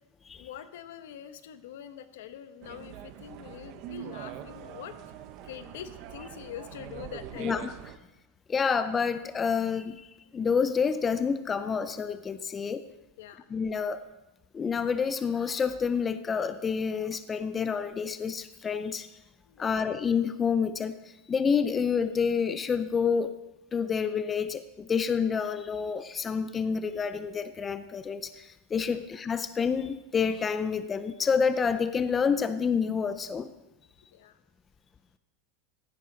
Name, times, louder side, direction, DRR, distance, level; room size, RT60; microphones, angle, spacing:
voice 1, 0.4-5.0 5.4-7.6 10.3-10.4 13.2-13.5 19.5-19.9 28.9-29.1 34.1-34.4, left 10 dB, 75° left, 11 dB, 1.0 m, -44 dB
sound 1, 2.6-8.0, right 11 dB, 40° right, 0.7 m, -43 dB
voice 2, 7.4-7.7 8.5-10.1 10.3-12.8 13.5-14.0 14.5-19.1 19.6-20.9 21.3-23.3 23.7-33.5, left 6 dB, 15° left, 11 dB, 0.4 m, -28 dB
15.0 x 11.5 x 3.9 m, 0.97 s
supercardioid pair, 165°, 0 cm